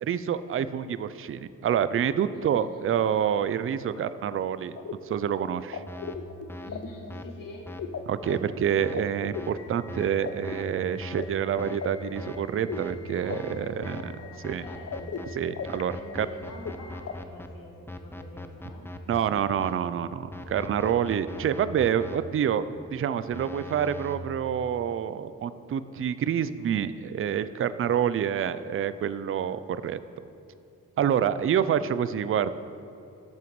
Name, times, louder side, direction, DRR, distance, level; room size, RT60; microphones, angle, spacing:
voice 1, 0.0-4.7 5.1-5.8 8.1-14.1 14.4-14.6 15.3-16.3 19.1-30.0 31.0-32.6, right 8 dB, 40° right, 14 dB, 0.4 m, -27 dB
voice 2, 2.3-2.9 6.6-7.7 13.1-15.2 15.9-18.9 30.9-31.5, left 2 dB, 70° left, -2 dB, 2.0 m, -46 dB
sound 1, 4.3-17.1, left 5 dB, 45° left, 0.7 m, -39 dB
sound 2, 5.9-6.2 6.5-6.7 7.1-7.2 7.7-7.8 8.2-8.4 8.8-9.0 9.3-9.5 9.9-10.1 10.4-10.6 11.0-11.2 11.6-11.8 12.1-12.4 12.7-12.9 13.3-13.6 13.8-14.0 14.4-15.3 15.6-17.5 17.9-19.7 20.3-22.2 23.3-24.2, left 1 dB, 5° left, 0.6 m, -40 dB
12.0 x 7.0 x 3.1 m, 2.6 s
supercardioid pair, 55°, 35 cm